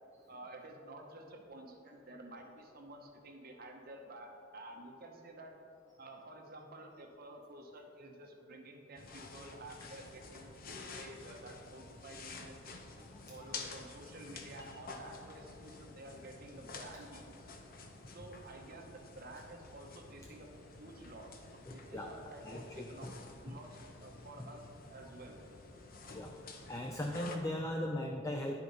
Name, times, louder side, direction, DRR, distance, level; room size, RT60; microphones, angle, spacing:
voice 1, 0.3-5.6 6.0-12.6 13.3-17.5 18.1-20.5 20.8-23.1 23.4-25.4, right 1 dB, 50° right, 2 dB, 0.9 m, -51 dB
sound 1, 9.0-27.4, left 3 dB, 45° left, 0.7 m, -50 dB
voice 2, 21.7-22.1 22.5-23.1 23.5-23.6 24.4-24.5 26.1-26.3 26.7-28.6, left 1 dB, 15° left, 2 dB, 0.4 m, -38 dB
11.0 x 4.9 x 4.0 m, 2.7 s
head